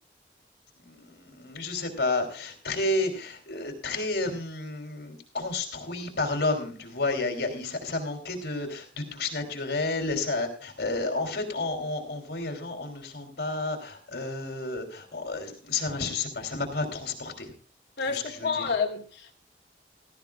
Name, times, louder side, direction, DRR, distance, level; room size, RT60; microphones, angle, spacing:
voice 1, 0.8-17.5 18.0-18.7, left 2 dB, 70° left, 3.5 m, -31 dB
voice 2, 18.0-19.3, left 5 dB, 90° left, 2.1 m, -29 dB
17.0 x 14.5 x 2.4 m
head